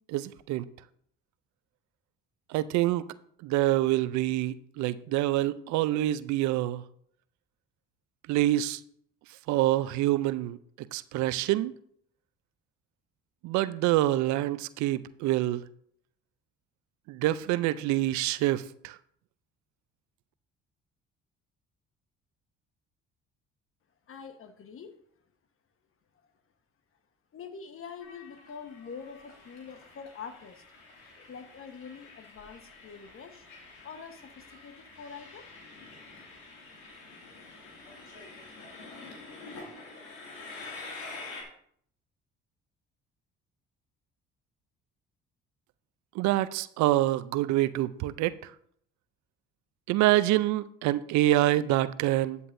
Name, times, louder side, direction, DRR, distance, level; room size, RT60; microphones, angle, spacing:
voice 1, 0.1-0.7 2.5-3.0 3.4-6.8 8.3-8.8 9.5-11.7 13.4-15.6 17.1-19.0 46.1-48.5 49.9-52.4, right 15 dB, 75° right, 0.5 m, -26 dB
voice 2, 24.1-25.0 27.3-30.6 31.3-33.5 33.8-35.5, left 6 dB, 50° left, 1.2 m, -45 dB
Train, 28.0-41.4, left 3 dB, 90° left, 2.4 m, -47 dB
12.0 x 8.3 x 2.6 m
supercardioid pair, 65°, 29 cm